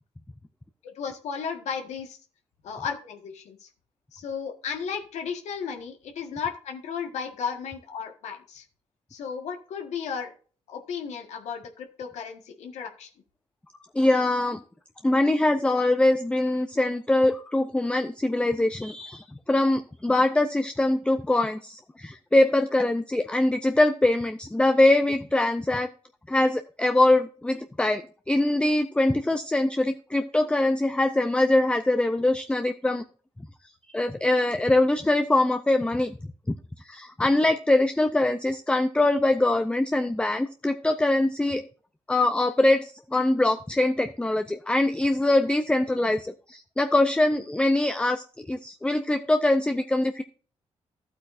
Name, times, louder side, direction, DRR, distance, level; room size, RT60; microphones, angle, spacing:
voice 1, 0.8-2.2 2.6-3.7 4.1-8.6 9.1-10.3 10.7-13.1, left 6 dB, 90° left, 4 dB, 1.5 m, -34 dB
voice 2, 13.9-14.6 15.0-25.9 26.3-28.0 28.3-33.0 33.9-36.2 36.8-41.6 42.1-50.2, left 2 dB, 10° left, 7 dB, 0.5 m, -23 dB
12.5 x 8.2 x 2.6 m, 0.40 s
cardioid pair, 95°, 11 cm